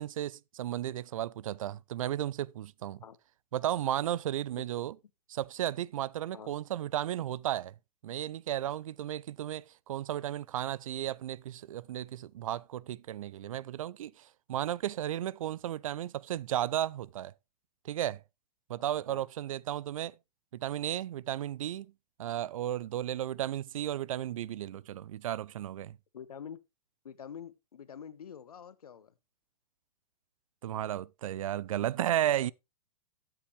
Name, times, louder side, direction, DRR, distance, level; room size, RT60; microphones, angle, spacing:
voice 1, 0.0-3.0 3.5-4.9 5.3-7.7 8.0-17.3 17.8-18.2 18.7-20.1 20.5-21.9 22.2-26.0 30.6-32.5, right 12 dB, 60° right, 0.5 m, -34 dB
voice 2, 26.1-26.6 27.0-29.1, left 8 dB, 70° left, 1.0 m, -46 dB
12.5 x 7.8 x 3.2 m
figure-of-eight pair, 110°, 20 cm